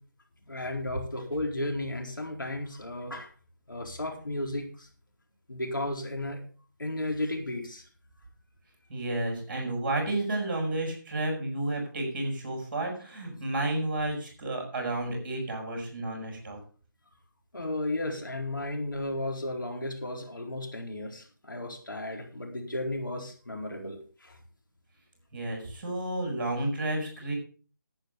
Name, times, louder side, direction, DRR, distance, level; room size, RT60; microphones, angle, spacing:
voice 1, 0.5-3.3 3.7-4.9 5.5-6.4 6.8-7.8 17.5-24.4, left 1 dB, 75° left, 2 dB, 4.3 m, -34 dB
voice 2, 8.9-16.6 25.3-27.3, right 2 dB, 30° right, 0 dB, 6.6 m, -31 dB
11.0 x 9.1 x 5.3 m, 0.39 s
figure-of-eight pair, 165°, 11 cm